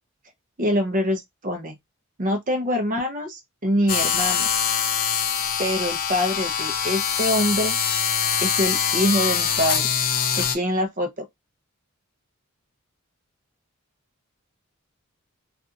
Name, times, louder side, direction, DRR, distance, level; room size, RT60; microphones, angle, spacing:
voice 1, 0.6-1.8 2.2-4.5 5.6-7.8 8.4-9.9 10.3-11.2, equal, 35° right, 0.7 m, -24 dB
sound 1, 3.9-10.6, left 7 dB, 40° left, 0.4 m, -23 dB
2.7 x 2.4 x 2.4 m
head